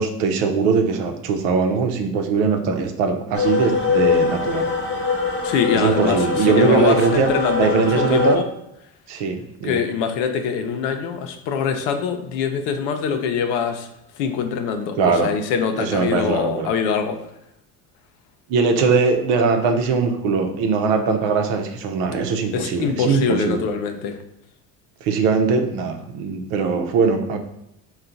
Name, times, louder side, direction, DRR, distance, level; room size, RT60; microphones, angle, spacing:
voice 1, 0.0-4.7 5.7-7.3 7.6-8.4 9.1-9.8 15.0-15.3 15.8-16.7 18.5-23.6 25.0-27.4, right 5 dB, 70° right, 5 dB, 0.8 m, -20 dB
sound 1, 3.3-8.3, left 5 dB, 25° left, 1.0 m, -22 dB
voice 2, 5.4-8.5 9.6-13.9 14.1-17.2 22.5-24.2, left 6 dB, 75° left, 6 dB, 0.7 m, -23 dB
4.5 x 2.4 x 3.8 m, 0.83 s
hypercardioid pair, 70°, 47 cm